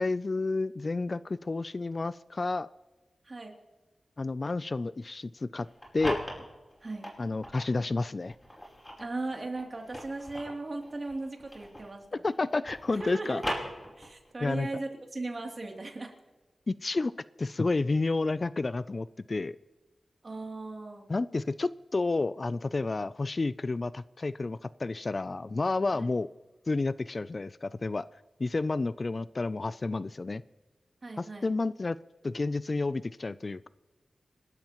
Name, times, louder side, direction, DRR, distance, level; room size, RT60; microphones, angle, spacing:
voice 1, 0.0-2.7 4.2-5.7 5.9-6.2 7.2-8.3 12.2-13.4 14.4-14.7 16.7-17.1 17.4-19.6 21.1-26.3 26.7-28.1 28.4-30.4 31.2-32.0 32.2-33.7, left 3 dB, 45° left, 17 dB, 0.4 m, -30 dB
voice 2, 3.2-3.5 6.8-7.1 9.0-12.2 12.9-13.4 14.0-16.1 20.2-21.1 25.9-26.1 31.0-31.5, right 2 dB, 45° right, 2 dB, 2.8 m, -37 dB
sound 1, 5.6-7.7 8.3-12.0 12.3-14.3, equal, 15° left, 4.9 m, -39 dB
27.5 x 13.0 x 3.0 m, 1.2 s
wide cardioid pair, 70°, 0 cm